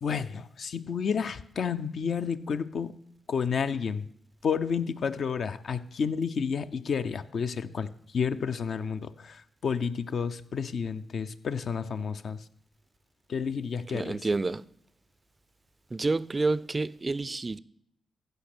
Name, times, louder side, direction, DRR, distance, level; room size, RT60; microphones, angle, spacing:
voice 1, 0.0-2.9 3.3-4.1 4.4-12.5 13.3-14.2, left 6 dB, 65° left, 0.6 m, -31 dB
voice 2, 13.9-14.6 15.9-17.6, right 3 dB, 35° right, 0.4 m, -29 dB
15.0 x 5.3 x 6.1 m
hypercardioid pair, 40°, 0 cm